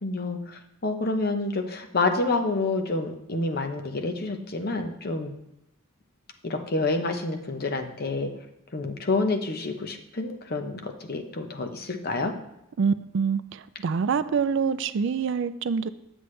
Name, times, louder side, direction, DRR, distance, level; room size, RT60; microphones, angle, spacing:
voice 1, 0.0-5.3 6.4-8.3 8.7-12.3, left 3 dB, 45° left, 5 dB, 0.8 m, -28 dB
voice 2, 12.8-13.4 13.8-15.9, right 6 dB, 60° right, 13 dB, 0.4 m, -25 dB
8.0 x 7.8 x 3.2 m, 0.83 s
head